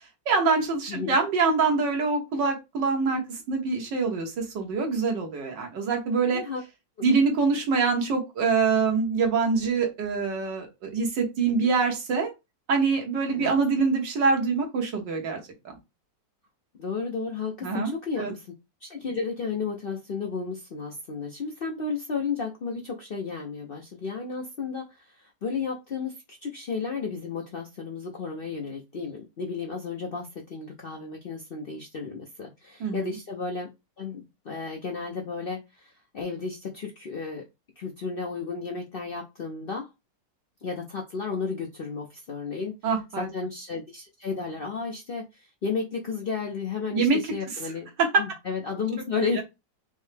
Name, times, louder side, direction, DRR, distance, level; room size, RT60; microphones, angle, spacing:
voice 1, 0.3-6.4 7.0-12.3 12.7-15.4 17.6-17.9 18.2-18.3 32.8-33.1 42.8-43.3 46.9-47.2 48.0-48.1, right 4 dB, 70° right, 2 dB, 1.9 m, -25 dB
voice 2, 16.8-18.5 18.8-33.7 34.0-37.4 37.8-39.9 40.6-42.7 43.2-47.9 48.2-49.4, left 5 dB, 80° left, 0 dB, 0.5 m, -33 dB
5.3 x 2.1 x 3.3 m, 0.23 s
omnidirectional pair, 2.0 m